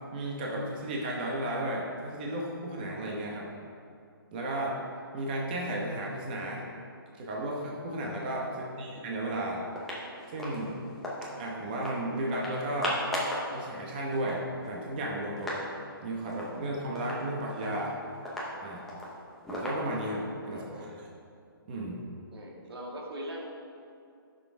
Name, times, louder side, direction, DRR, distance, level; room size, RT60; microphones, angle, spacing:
voice 1, 0.1-3.5 4.3-4.8 5.1-6.6 7.2-9.6 10.3-10.8 11.4-13.0 13.5-15.7 16.0-17.9 18.6-18.9 19.5-21.1 21.7-22.0, right 1 dB, 25° right, -3 dB, 0.9 m, -34 dB
voice 2, 8.4-8.9 20.4-20.9 22.3-23.5, equal, 85° right, -1 dB, 1.8 m, -42 dB
sound 1, 9.2-9.3 9.7-11.3 11.7-12.0 12.3-13.5 13.8-13.9 14.1-15.7 16.0-16.1 16.3-16.6 17.0-20.3, left 1 dB, ahead, 0.7 m, -37 dB
11.0 x 6.3 x 3.5 m, 2.5 s
hypercardioid pair, 170°, 13 cm